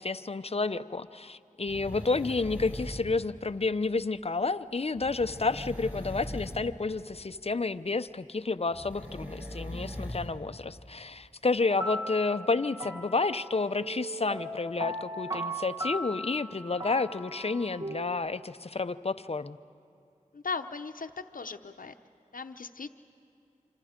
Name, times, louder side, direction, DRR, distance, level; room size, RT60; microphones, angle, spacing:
voice 1, 0.0-19.6, left 3 dB, 45° left, 13 dB, 0.7 m, -30 dB
sound 1, 1.7-3.2 5.0-6.7 8.7-10.3 10.8-10.9, left 1 dB, 10° right, 4.4 m, -40 dB
sound 2, 11.7-18.1, equal, 30° right, 1.4 m, -38 dB
voice 2, 20.3-21.9 22.3-22.9, left 4 dB, 80° left, 7 dB, 0.8 m, -37 dB
26.5 x 26.5 x 5.1 m, 2.6 s
wide cardioid pair, 40°, 14 cm